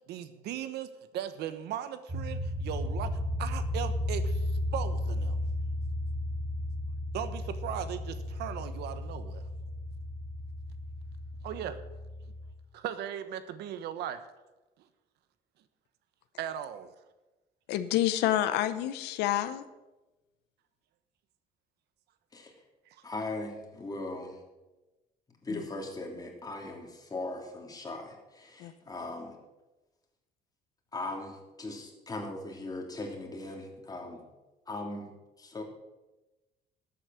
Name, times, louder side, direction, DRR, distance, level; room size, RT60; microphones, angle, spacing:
voice 1, 0.1-3.1 3.4-5.4 7.1-9.4 11.4-11.8 12.7-14.2 16.4-16.9 22.9-23.0, right 10 dB, 80° right, 11 dB, 1.1 m, -38 dB
sound 1, 2.1-12.5, left 1 dB, 30° right, 3.3 m, -34 dB
voice 2, 17.7-19.6 25.5-25.6 28.6-28.7, left 13 dB, 90° left, 12 dB, 0.8 m, -28 dB
voice 3, 23.0-24.4 25.4-29.4 30.9-34.2 34.7-35.1 35.4-35.6, left 2 dB, 20° left, 1 dB, 3.0 m, -39 dB
12.5 x 8.6 x 6.4 m, 1.1 s
cardioid pair, 110°, 17 cm